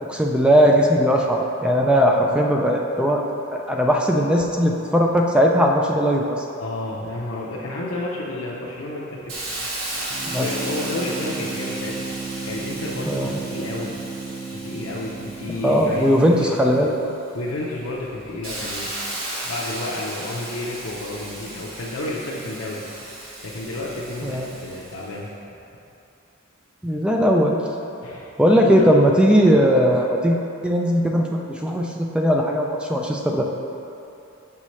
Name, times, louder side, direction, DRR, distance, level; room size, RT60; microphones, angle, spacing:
voice 1, 0.0-3.2 3.5-6.4 10.3-10.5 13.1-13.4 15.6-16.9 24.2-24.6 26.8-27.6 28.4-30.4 30.6-33.4, equal, 5° right, 0 dB, 0.3 m, -18 dB
voice 2, 6.6-9.3 10.4-14.0 14.5-16.3 16.7-16.8 17.3-19.1 19.4-22.8 23.4-25.3 28.0-29.0, left 2 dB, 85° left, -6 dB, 0.6 m, -31 dB
Hiss, 9.3-16.9 17.4-25.1, right 1 dB, 85° right, 1.2 m, -35 dB
sound 1, 10.1-16.7, right 4 dB, 50° right, 0.6 m, -34 dB
6.3 x 5.6 x 3.1 m, 2.8 s
head